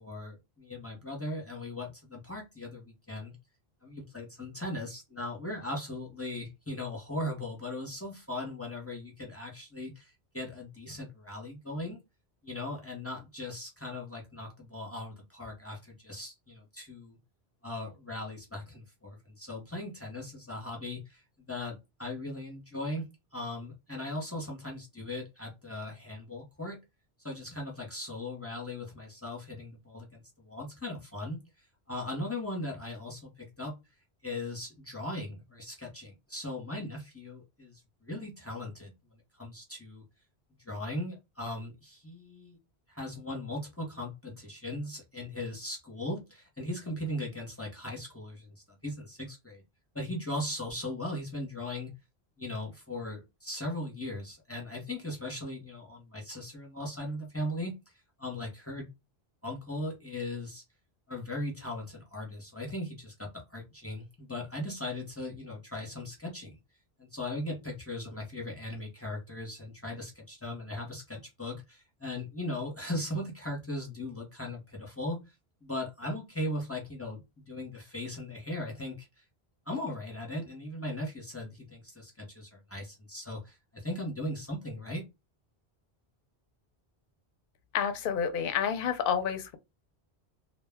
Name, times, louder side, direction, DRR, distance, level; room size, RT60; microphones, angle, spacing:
voice 1, 0.0-3.3 3.8-12.0 12.4-17.2 17.6-23.1 23.3-26.8 27.2-31.4 31.9-33.7 34.2-40.0 40.6-42.6 42.9-49.6 49.9-51.9 52.4-57.9 58.2-58.9 59.4-60.6 61.1-66.6 67.0-75.2 75.6-79.1 79.7-85.0, left 1 dB, 15° left, 0.7 m, -38 dB
voice 2, 87.7-89.6, left 7 dB, 65° left, 0.7 m, -29 dB
2.2 x 2.1 x 3.4 m
omnidirectional pair, 1.1 m